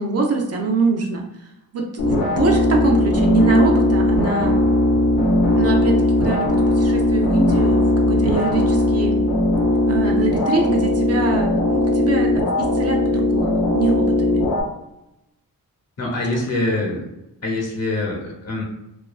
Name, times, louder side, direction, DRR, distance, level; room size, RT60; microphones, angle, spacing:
voice 1, 0.0-4.6 5.6-9.2 9.9-14.4, right 3 dB, 45° right, 1 dB, 0.4 m, -24 dB
sound 1, 2.0-14.6, left 1 dB, 85° left, 0.7 m, -18 dB
voice 2, 16.0-17.1 17.4-18.6, left 2 dB, 50° left, -1 dB, 0.8 m, -24 dB
2.7 x 2.4 x 2.3 m, 0.89 s
wide cardioid pair, 150°, 34 cm